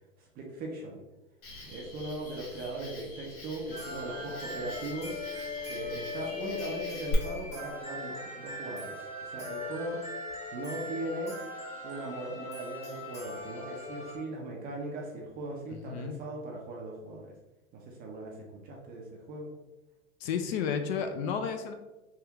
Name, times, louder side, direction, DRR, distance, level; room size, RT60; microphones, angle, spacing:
voice 1, 0.2-1.0 1.6-5.2 5.7-10.0 10.5-11.4 11.8-17.3 17.7-19.5, right 2 dB, 25° right, -1 dB, 0.4 m, -39 dB
Cricket, 1.4-7.1, left 4 dB, 85° left, 1.4 m, -45 dB
sound 1, 3.7-14.2, left 2 dB, 15° left, 0.9 m, -40 dB
voice 2, 15.9-16.2 20.2-21.7, left 6 dB, 50° left, 6 dB, 0.4 m, -32 dB
3.5 x 2.3 x 2.9 m, 1.1 s
hypercardioid pair, 120°, 42 cm